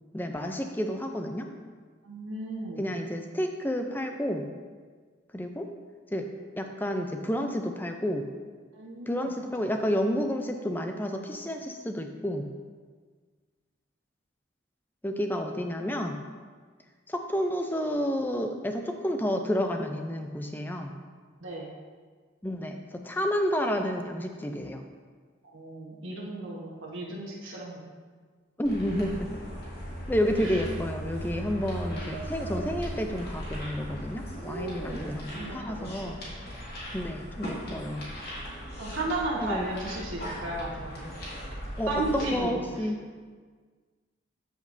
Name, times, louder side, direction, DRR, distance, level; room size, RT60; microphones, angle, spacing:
voice 1, 0.1-1.5 2.8-4.5 5.3-5.7 6.1-6.3 6.6-8.3 9.1-12.5 15.0-16.2 17.1-20.9 22.4-22.8 23.0-24.8 28.6-29.3 30.1-36.2 36.9-38.0 39.4-39.6 41.8-43.0, equal, 10° left, 4 dB, 0.4 m, -30 dB
voice 2, 2.0-2.8 8.7-9.3 21.4-21.7 25.4-27.8 30.4-30.6 34.8-36.0 38.8-41.1 41.9-42.9, right 2 dB, 80° right, -4 dB, 1.3 m, -34 dB
sound 1, 28.6-42.4, equal, 50° left, 2.3 m, -38 dB
13.0 x 5.2 x 2.6 m, 1.5 s
head